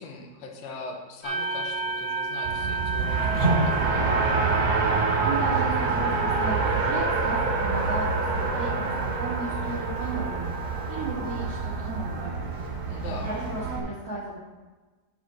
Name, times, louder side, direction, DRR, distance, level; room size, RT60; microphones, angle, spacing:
voice 1, 0.0-4.2 12.8-13.3, left 4 dB, 75° left, 1 dB, 3.1 m, -40 dB
sound 1, 1.2-12.2, right 4 dB, 30° left, 2.4 m, -34 dB
Race car auto racing, 2.4-13.8, right 3 dB, 50° right, 2.9 m, -26 dB
voice 2, 4.8-12.3 13.0-14.3, right 2 dB, 75° right, -8 dB, 1.4 m, -35 dB
12.5 x 4.7 x 4.3 m, 1.2 s
omnidirectional pair, 5.6 m